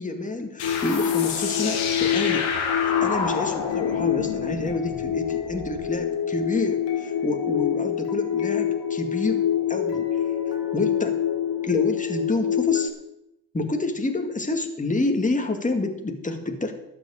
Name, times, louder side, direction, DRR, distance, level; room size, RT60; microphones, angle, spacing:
voice 1, 0.0-2.5 2.8-10.2 10.7-11.2 11.6-12.9 13.5-16.7, left 2 dB, 15° left, 4 dB, 2.0 m, -28 dB
sound 1, 0.6-5.9, left 6 dB, 90° left, 2.1 m, -29 dB
sound 2, 0.6-12.9, left 9 dB, 65° left, 1.9 m, -26 dB
12.5 x 6.2 x 8.7 m, 0.85 s
supercardioid pair, 70°, 47 cm